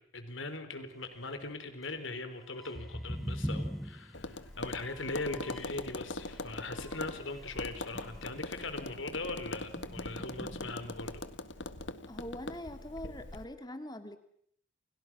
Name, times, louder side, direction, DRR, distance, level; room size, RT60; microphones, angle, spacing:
voice 1, 0.0-11.2, left 2 dB, 90° left, 9 dB, 4.2 m, -40 dB
sound 1, 2.5-5.9 6.2-8.5 8.8-9.0 9.4-11.1, equal, ahead, 1.2 m, -42 dB
Tap, 4.1-13.4, left 2 dB, 70° left, 1.8 m, -41 dB
voice 2, 12.1-14.2, left 1 dB, 20° left, 8 dB, 2.7 m, -43 dB
29.5 x 29.5 x 6.3 m, 0.67 s
head